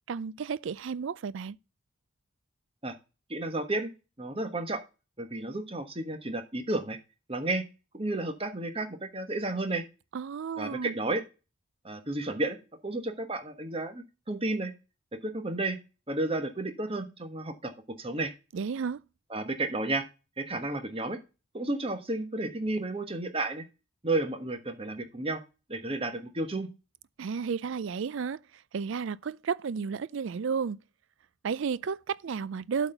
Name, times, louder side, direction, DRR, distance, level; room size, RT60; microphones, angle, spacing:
voice 1, 0.1-1.6 10.1-10.9 18.5-19.0 27.2-28.4 28.7-30.8 31.4-32.9, right 6 dB, 60° right, 0.4 m, -32 dB
voice 2, 3.3-3.9 4.2-4.8 5.2-7.0 7.3-7.6 7.9-9.8 10.6-11.2 11.8-12.6 12.8-14.7 15.2-15.8 16.1-17.7 18.0-18.3 19.3-20.0 20.4-21.2 21.5-23.6 24.0-25.4 25.7-26.7, right 2 dB, 25° right, 1.3 m, -32 dB
8.1 x 4.2 x 6.7 m
head